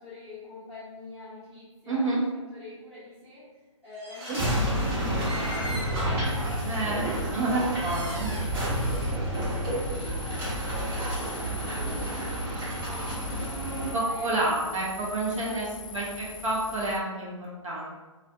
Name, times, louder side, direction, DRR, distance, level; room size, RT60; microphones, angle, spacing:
voice 1, 0.0-8.2 8.8-13.1 13.5-14.9 15.3-16.0, left 3 dB, 5° left, -15 dB, 0.7 m, -45 dB
voice 2, 1.9-2.2 4.3-4.4 6.6-8.3 13.9-15.7 15.9-18.0, right 2 dB, 65° right, -4 dB, 0.9 m, -29 dB
sound 1, 4.0-13.9, equal, 45° right, 1.1 m, -30 dB
sound 2, 6.2-17.0, left 5 dB, 85° left, 0.4 m, -44 dB
sound 3, 6.8-14.6, equal, 10° right, 0.3 m, -46 dB
2.6 x 2.4 x 2.3 m, 1.2 s
hypercardioid pair, 155°, 17 cm